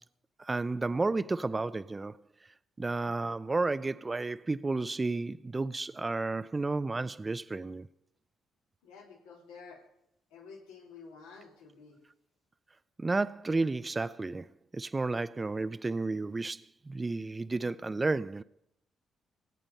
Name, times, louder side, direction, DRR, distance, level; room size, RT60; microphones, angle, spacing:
voice 1, 0.4-2.2 2.8-7.9 13.0-14.4 14.7-18.4, right 3 dB, 30° right, 0.7 m, -32 dB
voice 2, 8.8-9.8 10.3-12.0, left 5 dB, 80° left, 3.6 m, -51 dB
26.5 x 8.9 x 5.5 m
hypercardioid pair, 45°, 0 cm